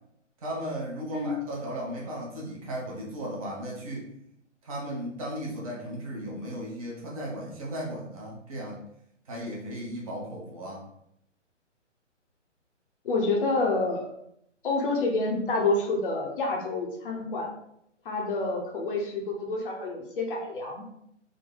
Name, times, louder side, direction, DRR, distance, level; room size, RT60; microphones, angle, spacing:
voice 1, 0.4-4.1 4.6-8.8 9.3-10.9, equal, 30° right, -3 dB, 0.8 m, -36 dB
voice 2, 13.0-14.1 14.6-17.5 18.0-20.8, left 2 dB, 45° left, 0 dB, 0.8 m, -28 dB
3.5 x 2.2 x 3.7 m, 0.74 s
hypercardioid pair, 150°, 37 cm